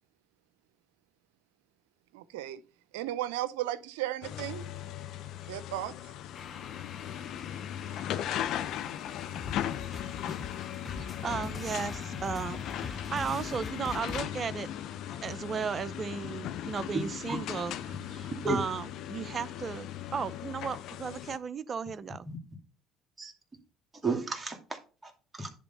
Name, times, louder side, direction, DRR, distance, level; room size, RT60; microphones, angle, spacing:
voice 1, 2.1-2.6 2.9-4.7 5.5-5.9 8.8-9.0, right 14 dB, 85° right, 0.6 m, -35 dB
sound 1, 4.2-21.4, left 11 dB, 65° left, 0.6 m, -38 dB
sound 2, 6.3-14.0, left 6 dB, 50° left, 1.5 m, -48 dB
sound 3, 9.4-14.2, left 4 dB, 20° left, 0.7 m, -42 dB
voice 2, 10.9-14.7 15.2-22.3, right 6 dB, 40° right, 0.7 m, -35 dB
voice 3, 24.0-25.5, right 3 dB, 25° right, 2.5 m, -33 dB
10.5 x 3.6 x 5.5 m
supercardioid pair, 70°, 0 cm